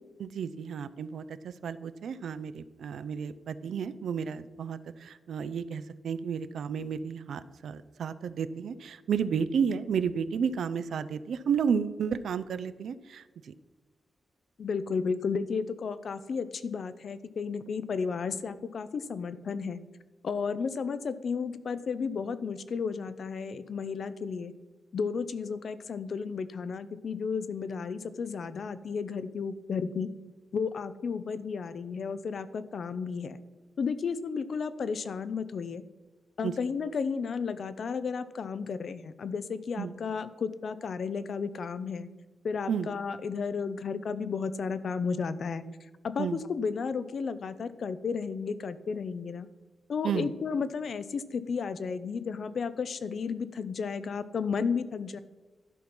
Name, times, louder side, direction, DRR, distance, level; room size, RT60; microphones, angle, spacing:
voice 1, 0.2-13.5 36.4-36.5 39.8-39.9 42.7-42.9 46.2-46.4 50.0-50.3, right 7 dB, 80° right, 13 dB, 0.5 m, -32 dB
voice 2, 14.6-19.8 20.2-24.5 24.9-30.1 30.5-33.4 33.8-35.8 36.4-42.1 42.4-45.7 46.0-49.5 49.9-55.2, left 5 dB, 55° left, 14 dB, 0.5 m, -33 dB
11.5 x 5.5 x 6.0 m, 1.2 s
wide cardioid pair, 175°, 0 cm